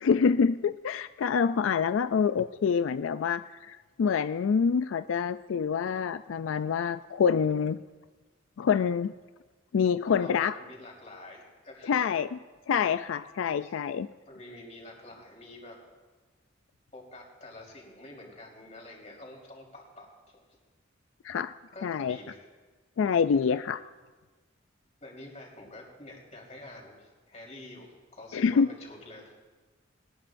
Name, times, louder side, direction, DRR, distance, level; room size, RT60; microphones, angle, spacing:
voice 1, 0.0-7.8 8.6-9.1 9.7-10.5 11.9-12.4 12.7-14.1 21.2-21.5 21.8-22.2 23.0-23.8 28.3-28.7, left 6 dB, 90° left, 12 dB, 0.4 m, -26 dB
voice 2, 10.1-12.1 13.6-13.7 14.3-15.8 16.9-20.4 21.7-22.4 25.0-29.5, left 1 dB, 35° left, -1 dB, 3.9 m, -47 dB
22.0 x 19.5 x 2.6 m, 1.3 s
head